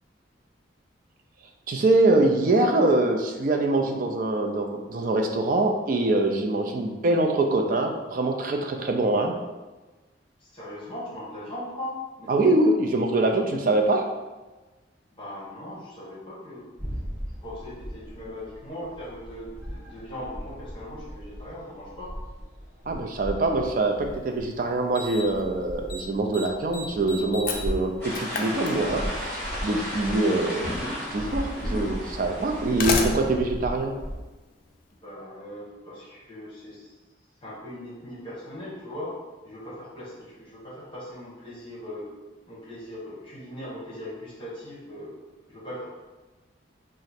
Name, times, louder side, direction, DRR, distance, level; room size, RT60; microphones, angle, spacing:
voice 1, 1.7-9.3 12.3-14.1 22.9-30.7 31.1-33.9, right 2 dB, 45° right, 3 dB, 0.4 m, -24 dB
voice 2, 10.4-12.3 15.1-16.7 17.4-22.1 35.0-36.9 37.4-39.1 39.4-42.1 42.5-45.1 45.5-45.9, left 1 dB, 30° left, -7 dB, 1.0 m, -39 dB
sound 1, 16.8-34.2, equal, 10° right, 1.1 m, -38 dB
Slam, 24.1-24.2 24.9-25.4 25.7-26.0 26.3-29.3 30.4-30.5 31.4-31.5 32.4-34.8, left 3 dB, 50° left, 0.4 m, -32 dB
sound 2, 28.0-33.1, equal, 10° left, 1.3 m, -34 dB
3.0 x 2.5 x 4.1 m, 1.2 s
head